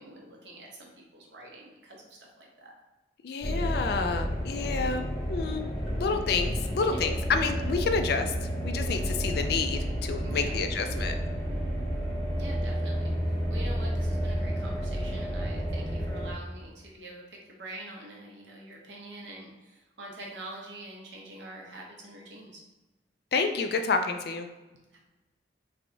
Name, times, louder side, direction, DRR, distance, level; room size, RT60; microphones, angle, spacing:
voice 1, 0.0-2.7 6.9-7.0 10.2-10.6 12.4-22.6 24.9-25.0, right 1 dB, 80° right, -2 dB, 0.9 m, -45 dB
voice 2, 3.2-5.0 5.3-5.6 6.0-8.3 8.6-11.1 23.3-24.5, left 4 dB, 60° left, 6 dB, 0.4 m, -29 dB
sound 1, 3.4-16.3, equal, ahead, 0.8 m, -31 dB
3.3 x 2.3 x 3.7 m, 1.1 s
head